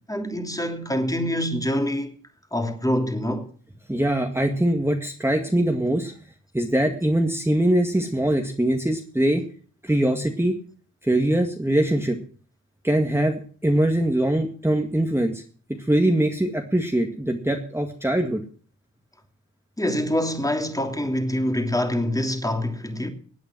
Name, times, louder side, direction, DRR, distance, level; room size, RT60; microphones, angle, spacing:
voice 1, 0.1-2.1 2.5-3.5 19.8-23.1, left 1 dB, 10° left, 2.8 m, -25 dB
voice 2, 3.9-6.1 6.5-9.4 9.8-10.6 11.0-12.2 12.8-15.4 15.9-18.4, right 1 dB, 5° right, 2.0 m, -22 dB
17.0 x 8.9 x 6.2 m
cardioid pair, 55°, 35 cm